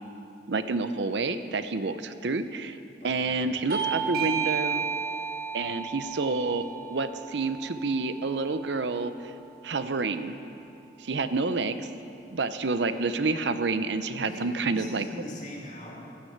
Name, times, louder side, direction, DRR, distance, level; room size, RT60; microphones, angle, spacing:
voice 1, 0.5-2.8 3.0-4.8 5.5-9.3 9.6-10.4 11.0-11.9 12.3-15.1, right 3 dB, 75° right, 11 dB, 0.7 m, -29 dB
voice 2, 3.0-3.5 12.2-12.3 14.2-16.0, left 1 dB, 40° left, -3 dB, 2.8 m, -42 dB
Bell / Doorbell, 3.7-8.9, right 7 dB, 55° right, 1.8 m, -33 dB
15.0 x 9.5 x 8.1 m, 2.6 s
head